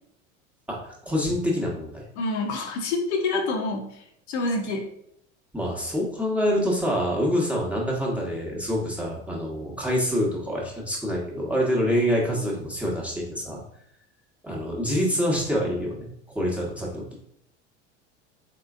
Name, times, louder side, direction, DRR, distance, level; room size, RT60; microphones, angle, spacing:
voice 1, 0.7-2.0 5.5-13.6 14.4-16.1 16.3-17.0, equal, 5° right, -4 dB, 1.0 m, -26 dB
voice 2, 2.2-4.9, left 3 dB, 65° left, 2 dB, 0.8 m, -27 dB
3.7 x 3.2 x 2.4 m, 0.72 s
hypercardioid pair, 75°, 36 cm